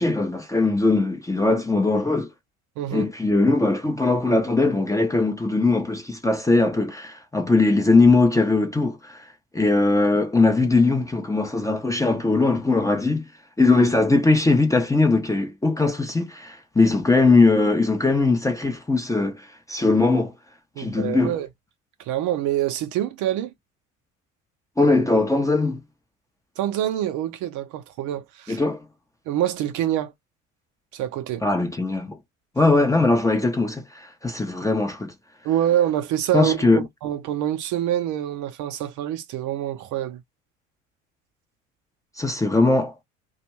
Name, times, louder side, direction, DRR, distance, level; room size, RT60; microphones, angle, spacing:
voice 1, 0.0-2.3 2.9-13.3 13.6-20.3 20.8-21.3 24.8-25.8 28.5-28.9 31.4-32.2 32.6-35.1 36.3-36.9 42.2-42.9, left 3 dB, 10° left, 0.6 m, -20 dB
voice 2, 2.8-3.1 20.8-21.5 22.0-23.5 26.6-28.6 29.3-30.1 30.9-31.4 35.4-40.2, right 12 dB, 50° right, 0.6 m, -26 dB
2.5 x 2.2 x 3.0 m
figure-of-eight pair, 60°, 40 cm